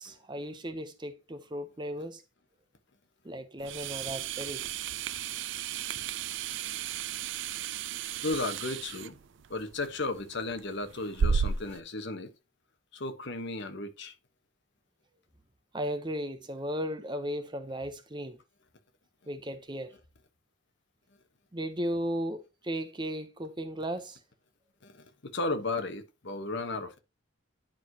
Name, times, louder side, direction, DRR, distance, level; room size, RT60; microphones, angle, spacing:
voice 1, 0.0-2.2 3.2-4.6 15.7-18.4 19.3-19.9 21.5-24.2, equal, 20° right, 0.7 m, -35 dB
sound 1, 3.6-11.8, right 7 dB, 60° right, 0.4 m, -34 dB
voice 2, 8.2-9.2 9.5-12.3 12.9-14.1 24.8-27.0, left 2 dB, 55° left, 1.1 m, -34 dB
10.5 x 4.7 x 2.8 m
head